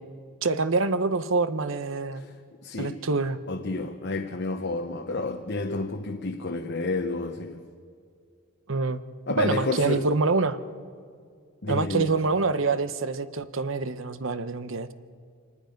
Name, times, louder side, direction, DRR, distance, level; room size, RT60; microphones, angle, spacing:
voice 1, 0.4-2.2 2.8-3.4 8.7-9.0 9.4-10.6 11.7-14.9, right 3 dB, 60° right, 0.9 m, -26 dB
voice 2, 2.6-3.0 3.5-7.7 9.3-10.1 11.6-12.2, left 2 dB, 50° left, 0.9 m, -30 dB
26.5 x 19.5 x 5.3 m
head